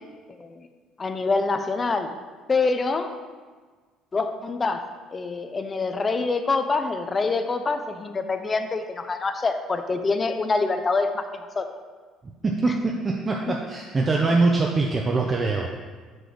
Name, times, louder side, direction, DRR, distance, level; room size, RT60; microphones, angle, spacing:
voice 1, 1.0-2.1 2.5-3.1 4.1-4.8 5.1-11.2 11.6-11.7 12.7-12.8, left 3 dB, 25° left, 8 dB, 0.5 m, -25 dB
voice 2, 12.4-15.7, right 3 dB, 25° right, -1 dB, 0.6 m, -23 dB
6.1 x 5.1 x 3.9 m, 1.4 s
cardioid pair, 110°, 0 cm